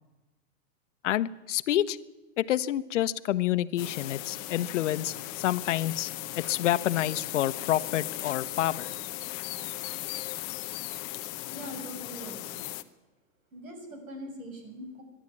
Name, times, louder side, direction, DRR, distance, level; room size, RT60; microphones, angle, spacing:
voice 1, 1.0-2.0 2.4-8.9, left 13 dB, 60° left, 13 dB, 1.0 m, -28 dB
sound 1, 3.8-12.8, left 16 dB, 20° left, 0.7 m, -37 dB
voice 2, 11.5-12.6 13.5-15.0, equal, 85° right, 4 dB, 7.3 m, -42 dB
23.5 x 11.5 x 9.7 m, 1.1 s
supercardioid pair, 160°, 40 cm